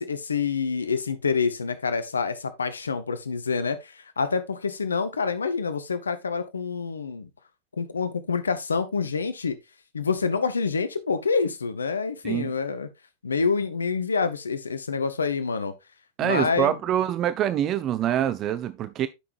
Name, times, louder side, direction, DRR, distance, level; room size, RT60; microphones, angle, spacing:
voice 1, 0.0-7.3 7.7-9.6 9.9-12.9 13.2-15.7 16.2-16.8, left 5 dB, 75° left, 0.9 m, -27 dB
voice 2, 16.2-19.1, right 10 dB, 30° right, 0.5 m, -25 dB
11.5 x 5.9 x 2.5 m
figure-of-eight pair, 90°, 0 cm